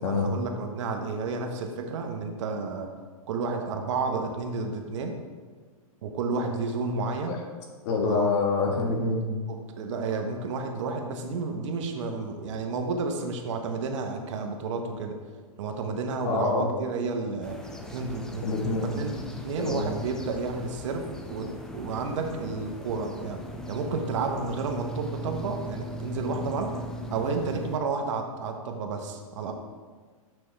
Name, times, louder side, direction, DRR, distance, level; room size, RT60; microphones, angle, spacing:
voice 1, 0.0-2.9 3.3-5.1 6.0-7.4 8.0-8.3 8.6-9.1 9.5-15.1 15.6-17.6 17.9-18.4 18.8-21.5 21.7-23.4 23.7-26.7 27.1-29.5, right 4 dB, 55° right, 4 dB, 1.0 m, -31 dB
voice 2, 7.8-9.3 16.2-16.7 18.4-18.9 19.6-19.9, left 3 dB, 50° left, 1 dB, 1.6 m, -26 dB
sound 1, 17.4-27.8, equal, 5° left, 0.3 m, -39 dB
7.1 x 6.1 x 3.3 m, 1.5 s
hypercardioid pair, 140°, 19 cm